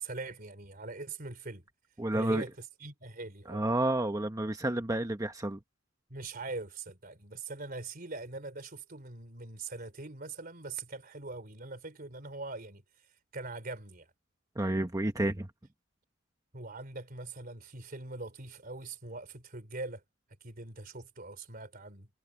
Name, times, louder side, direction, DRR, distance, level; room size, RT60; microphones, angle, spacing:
voice 1, 0.0-1.6 2.1-3.6 6.1-12.8 13.3-14.1 16.5-20.0 20.4-22.1, right 3 dB, 50° right, 3.6 m, -42 dB
voice 2, 2.0-2.4 3.5-5.6 14.6-15.5, right 1 dB, 20° right, 1.0 m, -30 dB
head